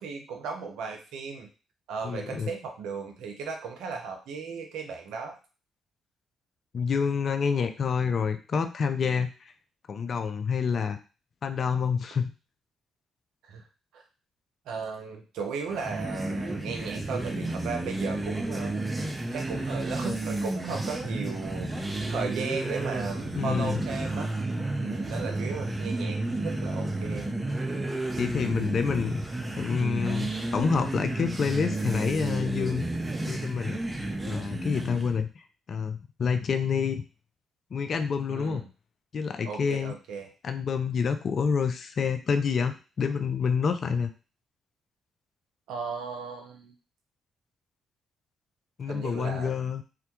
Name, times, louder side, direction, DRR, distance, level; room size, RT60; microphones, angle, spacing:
voice 1, 0.0-1.5 1.9-5.4 13.4-13.6 13.9-14.0 14.7-18.7 19.3-21.7 22.1-24.3 24.8-27.3 38.3-38.7 39.5-40.3 45.7-46.7 48.9-49.5, right 5 dB, 75° right, 3 dB, 0.5 m, -36 dB
voice 2, 2.0-2.5 6.7-9.5 9.9-11.0 11.4-12.3 23.3-23.8 28.2-32.8 33.2-33.8 34.3-35.3 35.7-37.0 37.7-38.6 39.1-39.9 40.4-44.1 48.8-49.8, left 6 dB, 55° left, 8 dB, 0.3 m, -28 dB
sound 1, 15.7-35.2, right 2 dB, 25° right, 0.6 m, -32 dB
2.2 x 2.1 x 2.8 m, 0.33 s
hypercardioid pair, 45°, 0 cm